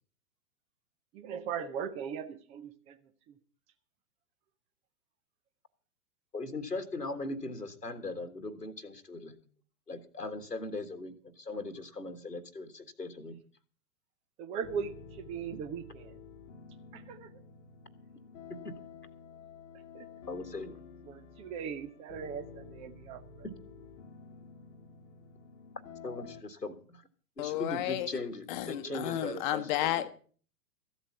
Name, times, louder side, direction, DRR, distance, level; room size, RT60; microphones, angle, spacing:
voice 1, 1.1-3.0 3.3-3.4 14.4-16.2 16.9-17.4 19.9-20.1 21.0-23.5 28.8-29.4 29.9-30.1, right 7 dB, 15° right, 0.6 m, -39 dB
voice 2, 6.3-9.4 9.9-13.4 15.5-15.6 18.6-18.7 20.3-20.8 26.0-27.0 27.4-30.1, left 2 dB, 90° left, 1.7 m, -39 dB
sound 1, 14.6-26.4, left 5 dB, 50° left, 1.3 m, -51 dB
voice 3, 27.4-28.1 28.5-30.1, left 14 dB, 30° left, 1.1 m, -32 dB
14.5 x 8.1 x 6.9 m
figure-of-eight pair, 110°, 47 cm